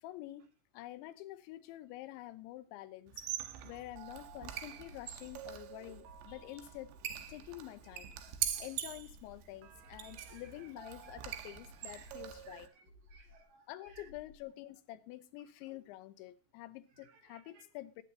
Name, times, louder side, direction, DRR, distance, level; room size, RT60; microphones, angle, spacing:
voice 1, 0.0-0.5 0.7-3.1 3.6-6.9 7.3-8.1 8.6-12.7 13.7-18.0, left 15 dB, 85° left, 3.1 m, -48 dB
Squeak, 3.1-12.7, right 11 dB, 75° right, 3.1 m, -43 dB
sound 1, 3.9-4.5 4.8-5.5 5.8-6.5 6.8-7.5 7.8-8.5 8.8-9.5 9.8-10.5 10.8-11.5 11.8-12.5 12.8-13.5 13.8-14.5, left 1 dB, 50° left, 1.6 m, -60 dB
voice 2, 7.6-7.9 8.2-8.7 10.0-10.7 11.0-11.2 11.8-12.1 12.5-13.7 13.9-14.1 15.7-15.8 17.0-17.6, right 6 dB, 60° right, 2.7 m, -61 dB
21.0 x 9.7 x 2.8 m
omnidirectional pair, 5.3 m